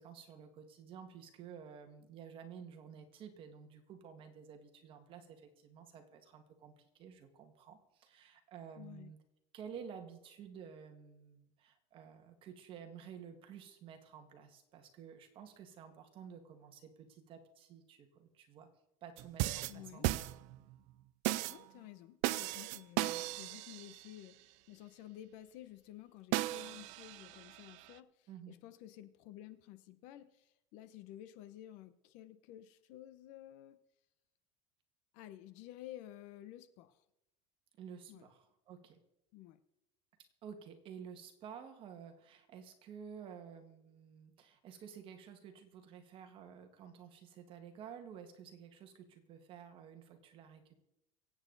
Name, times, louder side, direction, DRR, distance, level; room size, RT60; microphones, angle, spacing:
voice 1, 0.0-9.2 9.5-18.7 19.0-20.2 28.3-28.6 37.8-39.0 40.4-50.8, right 7 dB, 35° right, 6 dB, 1.8 m, -52 dB
voice 2, 8.8-9.1 19.7-20.1 21.5-33.8 35.1-37.0 38.1-38.3 39.3-39.6, left 13 dB, 55° left, 13 dB, 0.9 m, -53 dB
sound 1, 19.2-20.7 21.2-21.6 22.2-24.1 26.3-27.9, right 18 dB, 55° right, 0.5 m, -36 dB
24.0 x 8.8 x 4.0 m, 0.87 s
cardioid pair, 165°, 15 cm